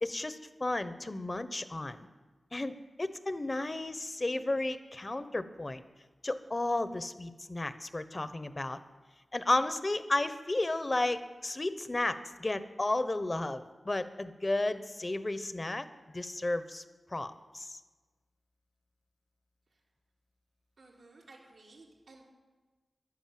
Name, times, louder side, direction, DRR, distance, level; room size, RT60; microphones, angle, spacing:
voice 1, 0.0-2.1 2.5-5.8 6.2-8.8 9.3-15.9 16.1-16.8 17.1-17.8, left 2 dB, 35° left, 12 dB, 1.0 m, -33 dB
voice 2, 20.8-22.2, right 2 dB, 90° right, -5 dB, 4.4 m, -56 dB
14.5 x 11.0 x 7.7 m, 1.3 s
wide cardioid pair, 75°, 0 cm